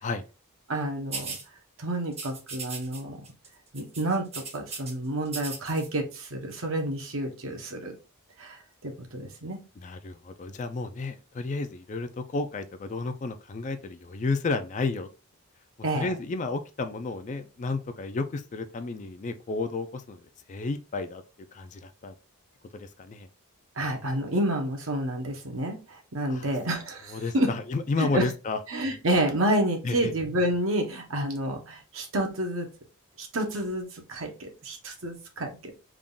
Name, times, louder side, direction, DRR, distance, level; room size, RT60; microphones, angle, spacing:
voice 1, 0.7-1.4 1.8-3.2 3.7-7.9 8.4-9.6 15.8-16.1 23.8-27.5 28.0-28.3 28.7-32.7 33.2-35.7, right 1 dB, 65° right, 0.9 m, -29 dB
sound 1, 1.1-1.4 2.1-3.0 3.2-3.5 3.7-4.9 5.3-5.9, right 4 dB, 30° right, 0.8 m, -37 dB
voice 2, 9.8-15.1 15.9-20.2 20.5-21.2 21.5-22.1 22.7-23.3 26.3-26.5 27.1-28.6 29.8-30.1, left 3 dB, 35° left, 0.3 m, -32 dB
3.6 x 2.3 x 3.8 m
head